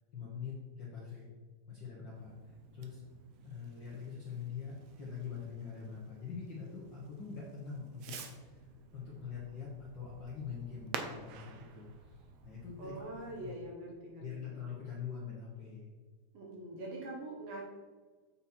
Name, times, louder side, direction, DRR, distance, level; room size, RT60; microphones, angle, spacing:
voice 1, 0.1-1.3 1.7-3.0 3.4-8.1 8.4-8.7 8.9-13.0 13.4-13.5 14.2-15.9, left 6 dB, 50° left, -5 dB, 1.5 m, -44 dB
Fireworks, 2.1-13.5, right 6 dB, 75° right, 1.4 m, -50 dB
voice 2, 12.8-14.3 16.3-17.6, right 1 dB, 60° right, -1 dB, 2.2 m, -43 dB
7.9 x 5.5 x 4.4 m, 1.4 s
omnidirectional pair, 3.7 m